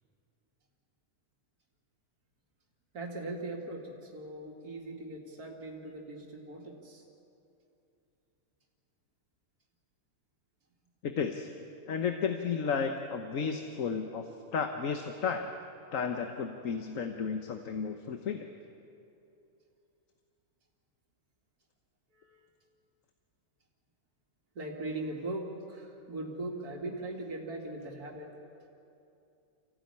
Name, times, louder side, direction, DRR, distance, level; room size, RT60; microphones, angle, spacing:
voice 1, 2.9-7.0 22.1-22.4 24.6-28.3, right 2 dB, 85° right, 0 dB, 2.6 m, -40 dB
voice 2, 11.0-11.5 11.9-14.2 14.5-15.5 15.9-18.5, left 6 dB, 65° left, 6 dB, 1.4 m, -33 dB
25.0 x 16.0 x 9.7 m, 2.7 s
omnidirectional pair, 1.6 m